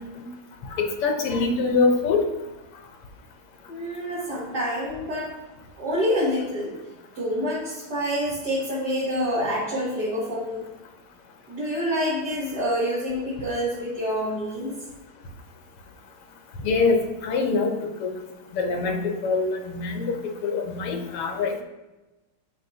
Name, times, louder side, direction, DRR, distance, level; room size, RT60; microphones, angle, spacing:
voice 1, 0.8-2.2 16.6-18.1 18.5-20.2 20.4-21.5, left 4 dB, 90° left, 4 dB, 1.9 m, -24 dB
voice 2, 3.7-5.3 5.8-6.7 7.1-10.6 11.5-14.8, equal, 50° right, -8 dB, 2.3 m, -27 dB
13.0 x 4.5 x 2.8 m, 1.1 s
omnidirectional pair, 2.4 m